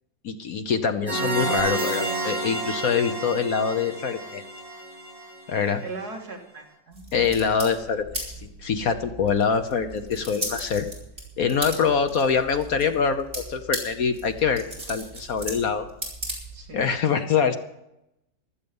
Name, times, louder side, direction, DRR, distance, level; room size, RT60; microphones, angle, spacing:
voice 1, 0.2-4.4 5.5-5.8 7.1-10.9 11.4-15.8 16.7-17.6, left 6 dB, 60° left, 8 dB, 1.2 m, -24 dB
sound 1, 1.1-5.7, right 2 dB, 5° right, 6.2 m, -30 dB
sound 2, 1.6-3.8 7.2-7.3, right 3 dB, 85° right, 3.9 m, -44 dB
voice 2, 5.8-7.3 16.5-17.3, right 3 dB, 60° right, 1 dB, 2.9 m, -40 dB
sound 3, 6.9-16.9, right 1 dB, 30° right, 5.0 m, -37 dB
15.5 x 12.0 x 5.4 m, 0.85 s
omnidirectional pair, 1.9 m